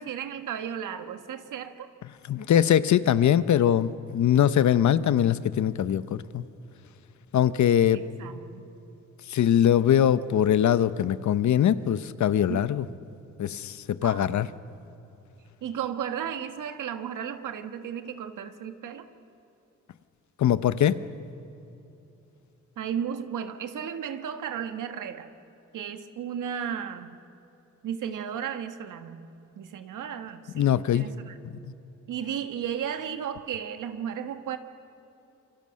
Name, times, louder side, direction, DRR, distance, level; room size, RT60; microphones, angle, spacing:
voice 1, 0.0-1.9 5.0-5.1 7.9-8.8 12.5-12.7 14.0-14.4 15.6-19.1 22.8-25.3 25.7-27.2 27.8-29.3 29.5-31.4 32.1-34.6, right 8 dB, 85° right, 8 dB, 1.5 m, -34 dB
voice 2, 2.3-6.4 7.3-8.0 9.3-12.8 13.4-13.8 14.0-14.5 20.4-21.0 30.5-31.1 31.6-31.7, left 10 dB, 65° left, 14 dB, 0.9 m, -22 dB
27.5 x 24.0 x 6.4 m, 2.9 s
cardioid pair, 100°, 30 cm